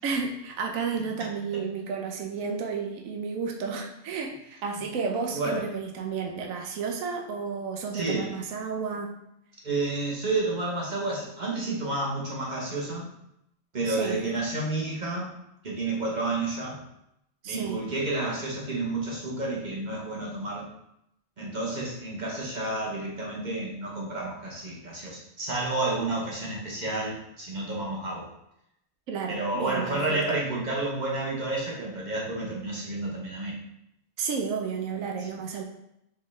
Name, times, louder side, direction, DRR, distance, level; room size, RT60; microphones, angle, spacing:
voice 1, 0.0-9.2 13.8-14.2 17.4-17.8 29.1-30.4 34.2-35.6, right 5 dB, 85° right, 3 dB, 1.0 m, -32 dB
voice 2, 5.3-5.6 7.9-8.3 9.6-13.1 13.7-15.3 15.6-16.8 17.4-20.7 21.4-28.3 29.3-33.5, right 2 dB, 40° right, -3 dB, 0.8 m, -30 dB
4.5 x 3.1 x 3.1 m, 0.80 s
omnidirectional pair, 1.4 m